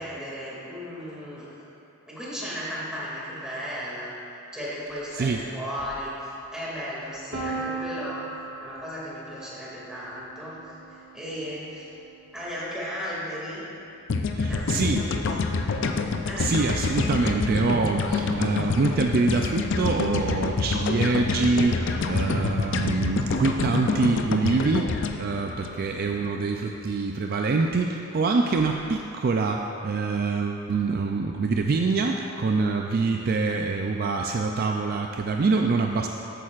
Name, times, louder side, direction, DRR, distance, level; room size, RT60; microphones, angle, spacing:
voice 1, 0.0-1.5 2.1-4.1 4.5-8.2 8.6-11.9 12.3-13.6 14.4-15.4 16.2-16.5 21.8-22.6 25.7-25.8, equal, 5° right, -8 dB, 2.3 m, -36 dB
Piano, 7.3-13.1, right 3 dB, 60° right, 1.6 m, -38 dB
sound 1, 14.1-26.3, left 4 dB, 60° left, 0.5 m, -27 dB
voice 2, 14.3-15.1 16.4-36.1, right 4 dB, 45° right, 3 dB, 0.4 m, -25 dB
13.5 x 8.6 x 2.4 m, 2.8 s
head